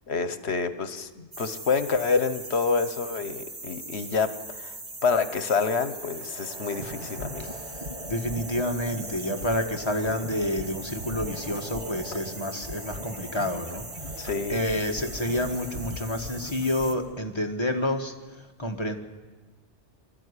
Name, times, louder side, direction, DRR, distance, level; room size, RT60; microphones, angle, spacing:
voice 1, 0.1-4.8 5.0-7.6 14.2-14.6, left 5 dB, 70° left, 12 dB, 1.4 m, -27 dB
sound 1, 1.3-16.9, right 1 dB, 45° right, 1.9 m, -39 dB
sound 2, 5.8-17.0, right 2 dB, 75° right, 2.9 m, -46 dB
voice 2, 8.1-13.8 14.5-18.9, left 1 dB, 25° left, 3 dB, 1.7 m, -29 dB
22.5 x 13.5 x 9.8 m, 1.3 s
omnidirectional pair, 1.1 m